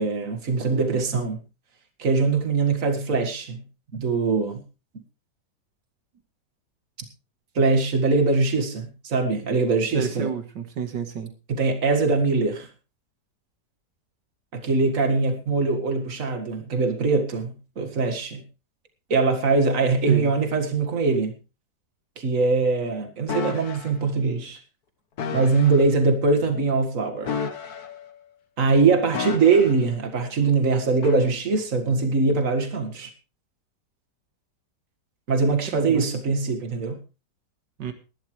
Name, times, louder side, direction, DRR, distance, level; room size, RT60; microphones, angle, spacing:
voice 1, 0.0-1.4 2.0-3.6 3.9-4.6 4.9-5.0 7.6-10.3 11.5-12.7 14.5-18.4 19.1-21.4 22.2-24.6 25.3-27.4 28.6-33.1 35.3-37.0, right 4 dB, 50° right, 2.2 m, -22 dB
voice 2, 9.9-11.3 20.1-20.3 35.7-36.0 37.8-37.9, right 7 dB, 85° right, 2.1 m, -30 dB
sound 1, 23.3-23.9 25.2-25.8 27.2-28.1 29.1-29.9 31.0-31.3, left 6 dB, 65° left, 1.7 m, -31 dB
20.0 x 11.5 x 3.2 m
omnidirectional pair, 1.8 m